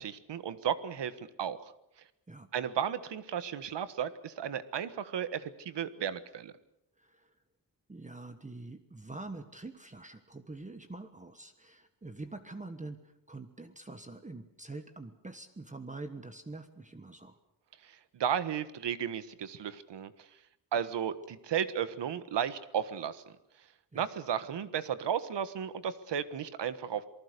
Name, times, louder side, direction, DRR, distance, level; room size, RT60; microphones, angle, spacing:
voice 1, 0.0-1.6 2.5-6.5 17.9-20.1 20.7-23.2 23.9-27.1, right 8 dB, 80° right, 13 dB, 1.5 m, -34 dB
voice 2, 7.0-7.3 7.9-17.4 23.9-24.1, right 2 dB, 20° right, 8 dB, 1.4 m, -45 dB
27.5 x 19.5 x 6.8 m, 0.83 s
wide cardioid pair, 130°, 41 cm